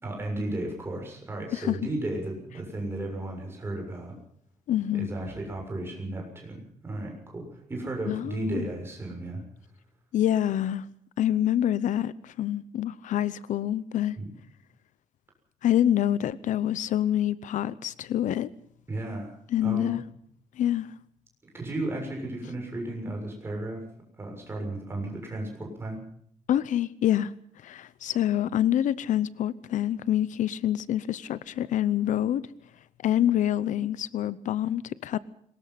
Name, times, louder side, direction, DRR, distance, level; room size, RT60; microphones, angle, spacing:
voice 1, 0.0-4.1 4.9-9.4 14.2-14.3 18.9-19.4 19.6-20.0 21.5-23.8 24.2-26.0, right 2 dB, 20° right, 6.9 m, -34 dB
voice 2, 4.7-5.1 8.1-8.7 10.1-10.8 11.2-14.2 15.6-18.5 19.5-20.0 20.6-20.9 26.5-27.3 27.6-32.4 33.0-35.2, left 11 dB, 75° left, 0.7 m, -26 dB
23.0 x 20.5 x 5.8 m
wide cardioid pair, 180°, 13 cm